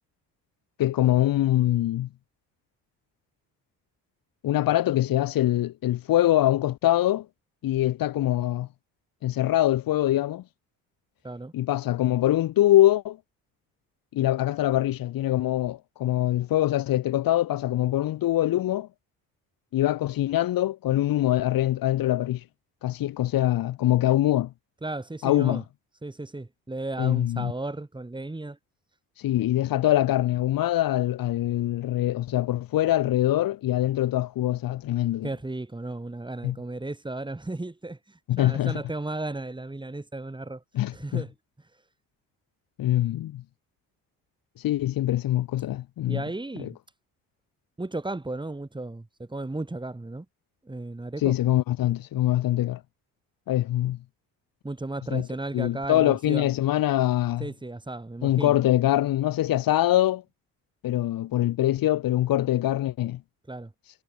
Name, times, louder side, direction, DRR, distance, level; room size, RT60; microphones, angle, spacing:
voice 1, 0.8-2.1 4.4-7.3 7.6-8.7 9.2-10.4 11.5-13.2 14.1-18.9 19.7-22.4 22.8-24.5 25.2-25.6 27.0-27.5 29.2-35.3 36.4-36.6 38.3-38.7 40.8-41.2 42.8-43.4 44.6-46.2 46.6-46.7 51.2-52.8 53.5-54.0 55.1-55.3 55.5-57.5 58.2-60.2 60.8-63.2, left 14 dB, 70° left, 2.1 m, -23 dB
voice 2, 24.8-25.6 26.0-28.6 35.2-40.6 40.9-41.3 46.1-46.8 47.8-50.3 50.6-51.4 54.6-56.5 57.4-58.6 63.5-63.7, right 2 dB, 15° right, 4.5 m, -34 dB
cardioid pair, 85°, 35 cm